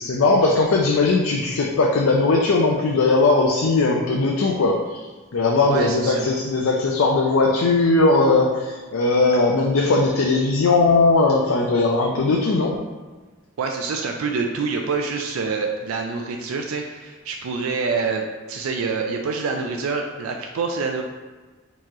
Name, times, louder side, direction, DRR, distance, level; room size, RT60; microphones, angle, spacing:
voice 1, 0.0-5.0 5.3-12.8, left 3 dB, 75° left, -1 dB, 0.5 m, -19 dB
voice 2, 5.7-6.3 13.6-21.0, right 4 dB, 85° right, 2 dB, 0.4 m, -26 dB
4.5 x 3.1 x 3.6 m, 1.3 s
head